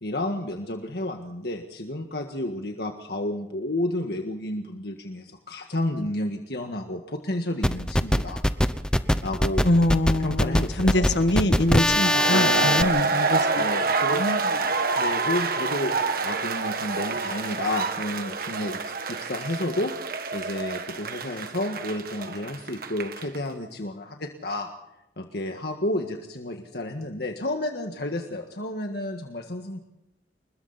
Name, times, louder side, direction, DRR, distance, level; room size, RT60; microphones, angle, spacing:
voice 1, 0.0-8.4 9.2-9.7 10.2-11.1 12.3-12.9 13.6-14.3 15.0-19.9 20.3-24.7 25.2-29.8, left 1 dB, 65° left, 4 dB, 1.8 m, -31 dB
sound 1, 7.6-12.8, equal, 5° left, 0.8 m, -22 dB
voice 2, 9.6-13.7 14.1-14.4, left 1 dB, 80° left, 8 dB, 1.5 m, -24 dB
sound 2, 11.7-23.4, right 4 dB, 55° right, 1.7 m, -27 dB
28.0 x 21.5 x 4.3 m, 0.89 s
head